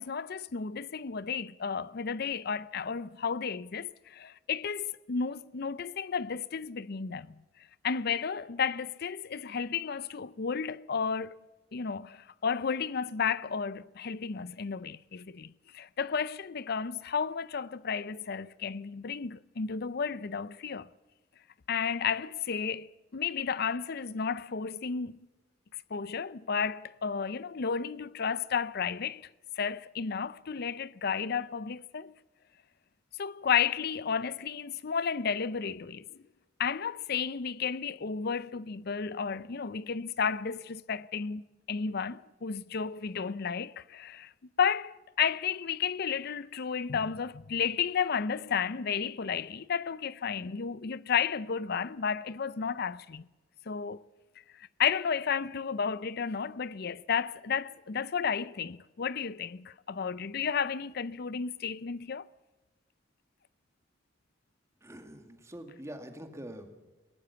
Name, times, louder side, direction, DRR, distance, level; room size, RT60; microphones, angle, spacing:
voice 1, 0.0-7.4 7.8-11.4 11.7-20.9 21.7-25.2 25.9-29.3 29.6-32.1 33.2-36.2 36.6-44.3 44.6-53.3 53.7-54.0 54.6-62.3, left 6 dB, 55° left, 0.6 m, -32 dB
voice 2, 64.8-66.8, right 1 dB, 15° right, 2.0 m, -45 dB
21.5 x 18.5 x 7.0 m
head